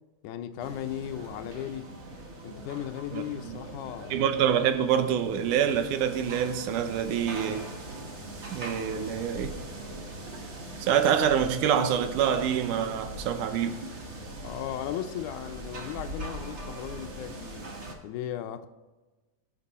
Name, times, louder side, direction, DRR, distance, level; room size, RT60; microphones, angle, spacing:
voice 1, 0.2-1.9 2.4-4.2 14.4-17.7 18.0-18.7, left 11 dB, 80° left, 2.1 m, -36 dB
sound 1, 0.6-17.9, right 2 dB, 60° right, 0.7 m, -41 dB
voice 2, 3.1-3.6 4.1-7.7 8.5-9.6 10.8-13.9, right 8 dB, 85° right, 2.4 m, -26 dB
17.0 x 6.7 x 4.2 m
omnidirectional pair, 3.5 m